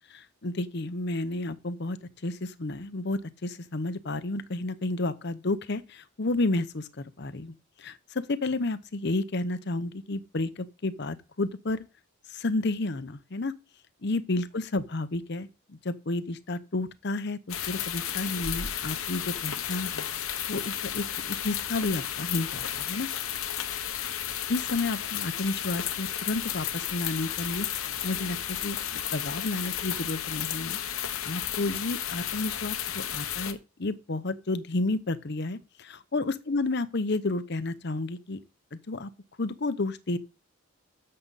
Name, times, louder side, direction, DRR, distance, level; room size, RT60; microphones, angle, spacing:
voice 1, 0.1-2.0 2.2-11.8 12.3-13.5 14.0-23.1 24.5-27.7 28.0-30.8 31.2-38.4 38.7-39.1 39.4-40.2, left 2 dB, 50° left, 0.8 m, -31 dB
sound 1, 17.5-33.5, left 10 dB, 80° left, 1.1 m, -33 dB
11.0 x 7.7 x 4.1 m
head